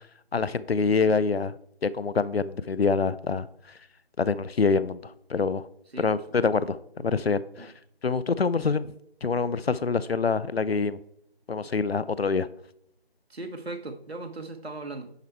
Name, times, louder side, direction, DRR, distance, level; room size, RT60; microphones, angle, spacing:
voice 1, 0.3-1.5 1.8-3.5 4.2-5.7 6.0-7.7 8.0-8.9 9.2-11.0 11.5-12.5, left 4 dB, 75° left, 0.5 m, -25 dB
voice 2, 5.9-6.4 7.0-7.1 7.6-7.7 8.7-8.8 13.3-15.1, right 2 dB, 80° right, 1.2 m, -38 dB
10.5 x 4.3 x 4.5 m
figure-of-eight pair, 170°, 31 cm